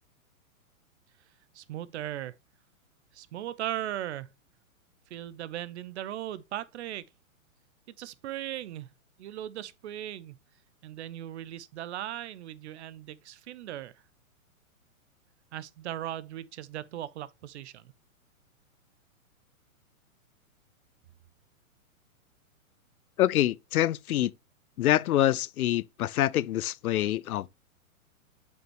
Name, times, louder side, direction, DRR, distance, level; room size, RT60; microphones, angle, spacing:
voice 1, 1.5-2.3 3.1-4.3 5.1-7.0 8.0-8.9 9.2-10.4 10.8-13.9 15.5-17.8, right 12 dB, 50° right, 0.6 m, -38 dB
voice 2, 23.2-24.3 24.8-27.5, left 13 dB, 85° left, 0.6 m, -26 dB
7.9 x 5.4 x 3.0 m
hypercardioid pair, 145°, 42 cm